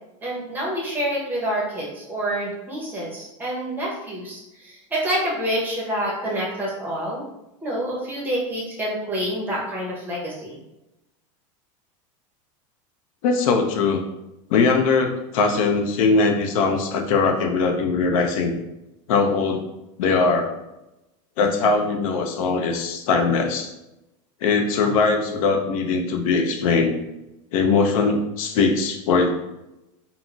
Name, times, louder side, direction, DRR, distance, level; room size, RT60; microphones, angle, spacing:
voice 1, 0.2-7.2 7.6-10.6, right 1 dB, 10° right, -4 dB, 0.7 m, -27 dB
voice 2, 13.2-14.0 14.5-18.5 19.1-19.6 20.0-20.6 21.4-23.7 24.4-26.9 27.5-29.3, left 4 dB, 85° left, 4 dB, 0.5 m, -21 dB
3.7 x 2.0 x 2.2 m, 0.94 s
supercardioid pair, 155°, 17 cm